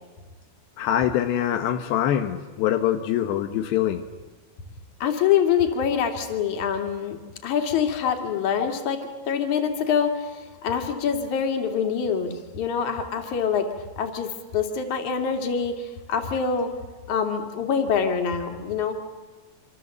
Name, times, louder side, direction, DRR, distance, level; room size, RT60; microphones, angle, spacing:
voice 1, 0.8-4.0, left 11 dB, 80° left, 6 dB, 3.3 m, -24 dB
voice 2, 5.0-9.0 9.3-13.7 14.0-16.7 17.1-18.9, left 7 dB, 50° left, 5 dB, 3.5 m, -25 dB
26.5 x 26.0 x 7.9 m, 1.3 s
omnidirectional pair, 5.0 m